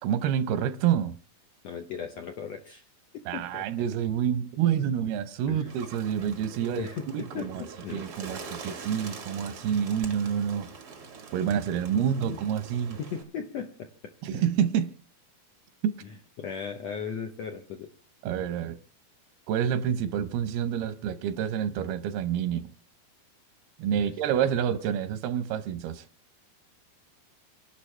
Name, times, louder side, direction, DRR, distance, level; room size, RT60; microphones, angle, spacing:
voice 1, 0.0-1.1 3.3-6.9 7.1-7.6 7.9-10.7 11.3-13.0 14.2-14.9 18.2-18.8 19.5-22.7 23.8-26.0, right 9 dB, 85° right, 2.8 m, -28 dB
voice 2, 1.6-2.8 3.1-3.9 5.5-5.7 6.6-8.1 11.9-12.4 13.0-13.9 14.3-14.5 16.0-17.9 23.9-24.1, left 7 dB, 80° left, 1.5 m, -37 dB
Bird, 5.6-13.2, right 4 dB, 65° right, 0.9 m, -44 dB
28.5 x 11.5 x 3.3 m
omnidirectional pair, 4.3 m